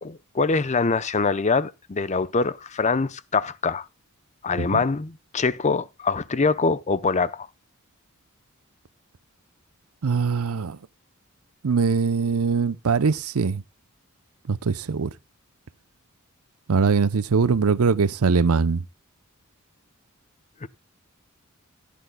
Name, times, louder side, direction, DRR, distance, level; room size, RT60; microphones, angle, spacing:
voice 1, 0.0-3.9 4.4-7.5 20.6-20.7, left 4 dB, 35° left, 0.6 m, -24 dB
voice 2, 10.0-10.8 11.6-13.6 14.5-15.1 16.7-18.8, right 5 dB, 90° right, 0.6 m, -22 dB
15.5 x 10.5 x 2.2 m
head